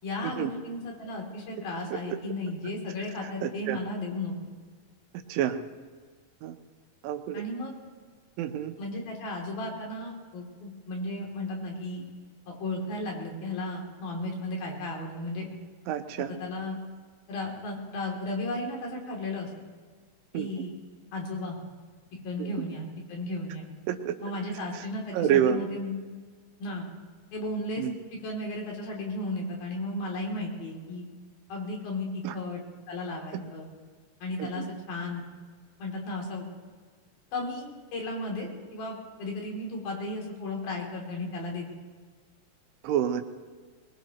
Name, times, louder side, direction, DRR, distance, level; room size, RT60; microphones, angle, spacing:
voice 1, 0.0-4.3 7.3-7.7 8.8-12.0 12.5-15.5 16.3-16.8 17.3-19.5 20.3-20.7 21.1-21.6 22.2-23.7 24.2-25.9 26.6-26.8 27.3-31.0 31.5-32.6 32.9-33.7 34.2-35.2 35.8-36.5 37.3-41.7, left 2 dB, 85° left, -1 dB, 4.9 m, -34 dB
voice 2, 3.4-3.8 5.3-5.6 6.4-6.5 7.0-7.4 8.4-8.7 15.9-16.3 20.3-20.7 22.4-22.7 23.9-24.1 24.7-24.9 25.1-25.6 27.8-27.9 32.2-32.3 34.4-34.7 42.8-43.2, right 10 dB, 80° right, 5 dB, 2.5 m, -28 dB
22.0 x 21.0 x 3.0 m, 1.5 s
omnidirectional pair, 4.1 m